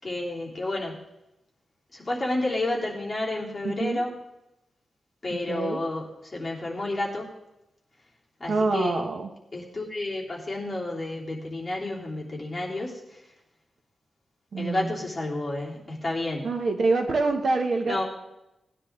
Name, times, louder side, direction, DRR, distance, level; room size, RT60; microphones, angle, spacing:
voice 1, 0.0-0.9 1.9-4.1 5.2-7.2 8.4-9.0 9.5-13.3 14.6-16.5 17.8-18.0, left 2 dB, 15° left, -4 dB, 3.2 m, -30 dB
voice 2, 3.6-4.0 5.3-5.8 8.5-9.3 14.5-15.0 16.4-18.0, right 3 dB, 50° right, 4 dB, 1.1 m, -26 dB
18.0 x 9.8 x 3.7 m, 0.90 s
wide cardioid pair, 160°, 0 cm